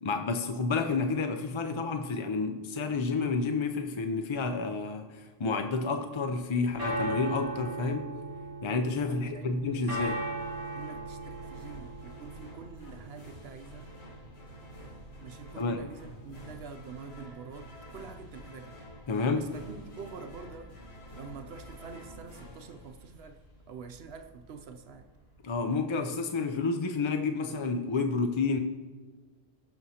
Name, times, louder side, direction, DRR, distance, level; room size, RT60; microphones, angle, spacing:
voice 1, 0.0-8.2 8.6-10.3 15.6-15.8 19.1-19.5 25.4-28.6, left 4 dB, 40° left, 0.4 m, -30 dB
sound 1, 6.4-25.5, right 2 dB, 20° left, 3.0 m, -41 dB
voice 2, 9.1-9.6 10.7-13.9 15.2-18.8 19.4-20.8 21.2-25.1, right 5 dB, 70° right, 0.9 m, -46 dB
sound 2, 10.0-23.6, left 1 dB, 65° left, 1.8 m, -49 dB
17.5 x 6.1 x 2.8 m
omnidirectional pair, 1.1 m